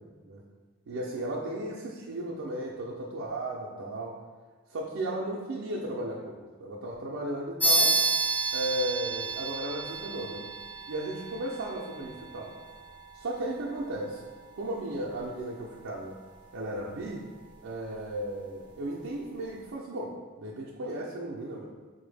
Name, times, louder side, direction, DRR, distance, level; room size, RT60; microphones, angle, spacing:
voice 1, 0.9-4.2 4.7-8.0 8.5-10.4 10.9-12.5 13.1-14.2 14.5-16.2 16.5-17.2 17.6-21.7, right 1 dB, 70° right, -5 dB, 0.4 m, -35 dB
sound 1, 7.6-17.6, right 2 dB, 5° left, 0.6 m, -32 dB
4.0 x 2.0 x 3.3 m, 1.4 s
head